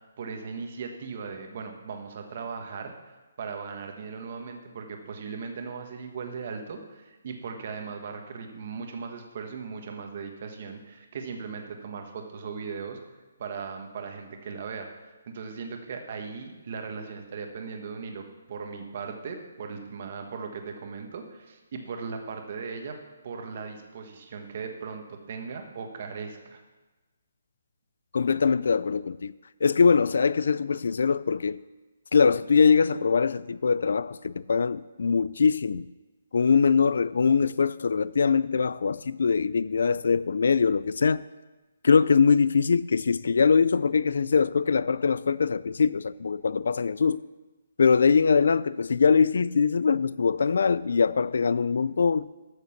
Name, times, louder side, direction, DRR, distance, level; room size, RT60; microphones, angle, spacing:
voice 1, 0.2-2.9 3.4-13.0 13.4-14.9 15.3-23.0 23.2-26.6, right 5 dB, 35° right, 1.4 m, -38 dB
voice 2, 28.1-29.3 29.6-31.6 32.1-35.9 36.3-41.2 41.8-47.2 47.8-52.3, left 5 dB, 65° left, 0.3 m, -22 dB
13.0 x 6.6 x 7.1 m
hypercardioid pair, 175°, 0 cm